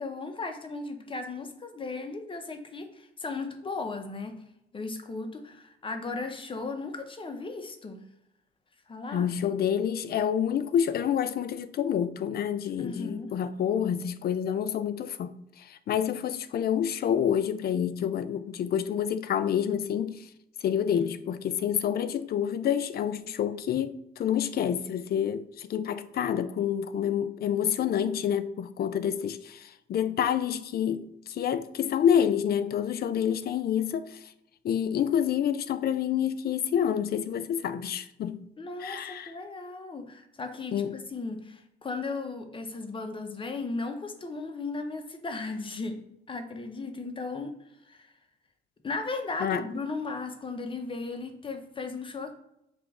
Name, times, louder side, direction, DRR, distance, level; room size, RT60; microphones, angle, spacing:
voice 1, 0.0-4.4 4.7-8.0 8.9-9.3 12.8-13.3 38.6-46.0 46.3-47.5 47.9-48.1 48.8-52.4, left 3 dB, 25° left, 0.7 m, -36 dB
voice 2, 9.1-20.3 20.6-34.3 34.6-38.5 38.8-39.3 40.7-40.9 49.4-49.6, left 9 dB, 50° left, 0.4 m, -28 dB
5.0 x 2.9 x 3.6 m
cardioid pair, 90°, 20 cm